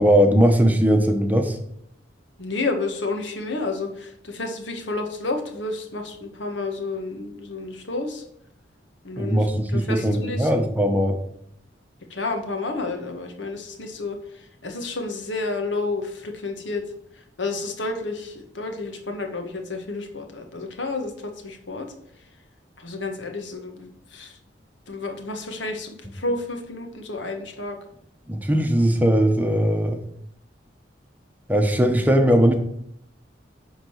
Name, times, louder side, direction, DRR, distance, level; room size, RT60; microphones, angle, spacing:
voice 1, 0.0-1.6 9.2-11.2 28.3-30.0 31.5-32.5, equal, 10° right, 4 dB, 1.0 m, -19 dB
voice 2, 2.4-8.2 9.0-10.6 12.1-16.8 17.1-21.9 22.8-24.4 24.9-27.8, left 3 dB, 80° left, 4 dB, 1.6 m, -31 dB
10.5 x 4.0 x 6.4 m, 0.71 s
head